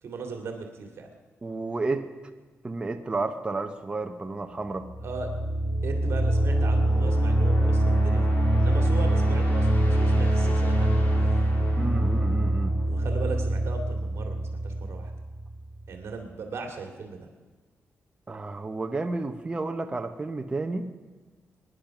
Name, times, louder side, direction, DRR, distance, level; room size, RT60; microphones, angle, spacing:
voice 1, 0.0-1.1 5.0-5.3 5.8-11.3 12.9-15.1 15.9-17.3, right 4 dB, 60° right, 3 dB, 2.2 m, -38 dB
voice 2, 1.4-2.1 2.6-4.9 11.8-12.7 18.3-20.9, right 3 dB, 20° right, 5 dB, 0.7 m, -31 dB
sound 1, 4.8-15.6, right 1 dB, 30° left, 2.7 m, -24 dB
22.5 x 10.5 x 5.9 m, 1.3 s
wide cardioid pair, 155°, 5 cm